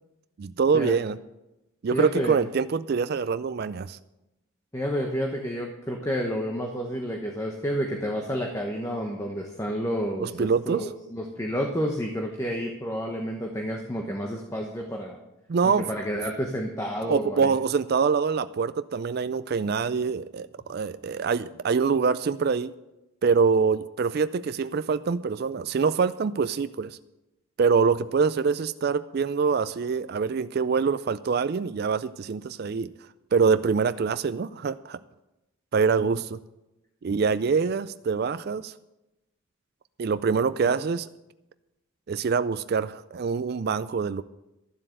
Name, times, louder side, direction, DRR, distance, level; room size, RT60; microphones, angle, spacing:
voice 1, 0.4-1.2 1.8-4.0 10.2-10.8 15.5-15.9 17.1-22.7 23.2-27.0 27.6-32.9 33.3-35.0 35.7-36.4 37.0-38.7 40.0-41.1 42.1-44.2, right 5 dB, 45° right, 13 dB, 0.3 m, -25 dB
voice 2, 1.9-2.4 4.7-15.2 15.6-17.5 35.9-36.1, equal, 15° left, 1 dB, 1.0 m, -30 dB
12.5 x 7.6 x 7.7 m, 0.95 s
head